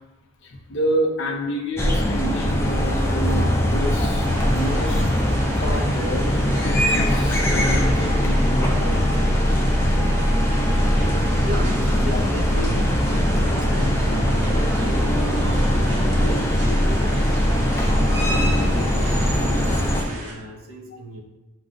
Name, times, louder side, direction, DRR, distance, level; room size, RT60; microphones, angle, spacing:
voice 1, 0.4-5.0 5.6-9.2 12.1-12.2, equal, 60° left, 1 dB, 0.6 m, -29 dB
sound 1, 1.8-20.0, equal, 10° left, 0.4 m, -20 dB
sound 2, 4.2-20.3, right 1 dB, 35° right, 0.9 m, -38 dB
voice 2, 11.4-19.4 19.9-21.2, right 1 dB, 75° right, 1 dB, 0.9 m, -35 dB
6.2 x 2.3 x 3.8 m, 1.0 s
head